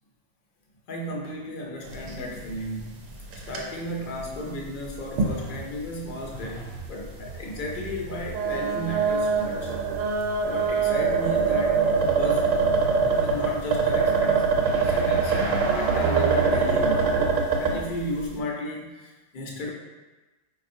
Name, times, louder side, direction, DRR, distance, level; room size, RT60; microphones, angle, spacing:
voice 1, 0.9-3.0 3.4-9.7 10.5-12.5 13.2-14.4 14.7-17.2 17.6-19.7, left 1 dB, 55° left, -1 dB, 0.6 m, -34 dB
sound 1, 1.9-2.4 2.7-2.8 3.2-3.6 4.2-4.3 5.2-5.3 5.7-5.8 7.0-7.1 8.2-17.8, right 5 dB, 85° right, 0.9 m, -23 dB
sound 2, 2.3-17.3, right 3 dB, 50° right, 0.8 m, -36 dB
4.2 x 2.4 x 2.6 m, 1.2 s
omnidirectional pair, 1.2 m